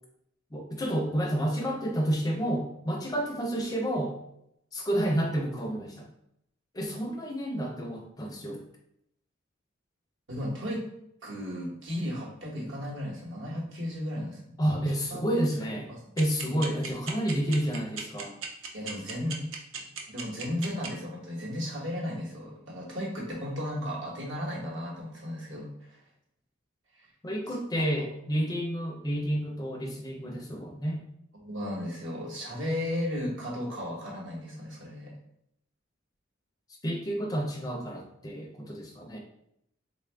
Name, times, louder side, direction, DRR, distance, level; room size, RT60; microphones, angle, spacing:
voice 1, 0.5-4.2 4.7-6.1 6.7-8.6 14.6-15.9 16.2-18.3 27.2-31.0 36.8-39.2, equal, 20° left, 1 dB, 0.4 m, -30 dB
voice 2, 10.3-10.9 11.2-14.6 15.1-15.2 18.7-19.5 19.8-25.7 26.9-27.1 31.3-35.1, left 1 dB, 70° right, -3 dB, 1.1 m, -35 dB
sound 1, 16.2-20.9, right 6 dB, 85° right, 0.6 m, -36 dB
3.6 x 2.4 x 3.3 m, 0.77 s
head